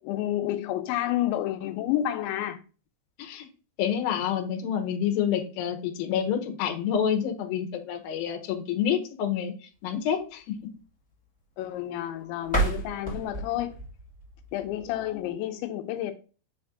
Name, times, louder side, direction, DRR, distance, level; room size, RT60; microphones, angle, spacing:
voice 1, 0.0-2.6 11.6-13.7 14.5-16.1, left 13 dB, 90° left, 3.0 m, -30 dB
voice 2, 3.8-9.5 9.8-10.6, left 8 dB, 70° left, 2.6 m, -28 dB
sound 1, 12.4-15.3, right 2 dB, 5° left, 1.3 m, -31 dB
6.1 x 4.3 x 3.7 m
omnidirectional pair, 5.1 m